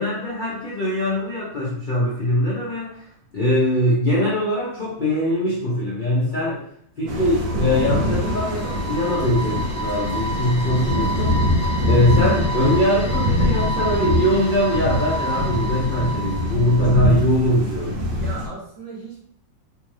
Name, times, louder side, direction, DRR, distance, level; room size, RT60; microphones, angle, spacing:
voice 1, 0.0-3.1 3.3-6.6 7.0-11.3 11.9-18.0, left 1 dB, 50° left, -7 dB, 0.6 m, -22 dB
sound 1, 7.1-18.5, left 1 dB, 85° right, 1.6 m, -24 dB
sound 2, 7.2-17.2, right 1 dB, 5° left, 0.5 m, -31 dB
voice 2, 18.1-19.2, right 3 dB, 55° right, -4 dB, 1.1 m, -37 dB
3.6 x 2.4 x 3.1 m, 0.63 s
omnidirectional pair, 2.0 m